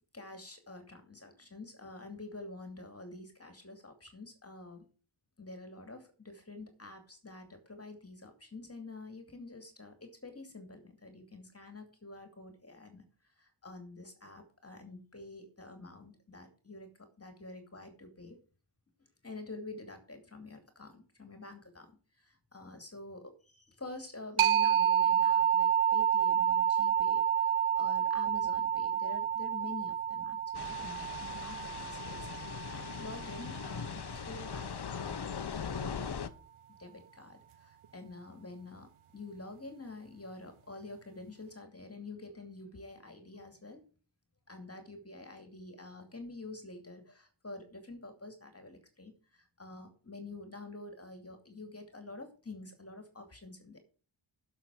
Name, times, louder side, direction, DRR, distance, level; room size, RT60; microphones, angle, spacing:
voice 1, 0.1-4.9 5.4-13.0 13.4-16.9 17.2-18.4 19.2-21.9 22.2-36.3 36.8-43.8 44.5-53.8, left 2 dB, 30° left, 6 dB, 2.6 m, -48 dB
sound 1, 24.4-33.8, right 9 dB, 80° right, 0.7 m, -29 dB
sound 2, 30.5-36.3, left 6 dB, 50° left, 1.0 m, -40 dB
12.0 x 6.8 x 4.7 m, 0.38 s
wide cardioid pair, 120°, 49 cm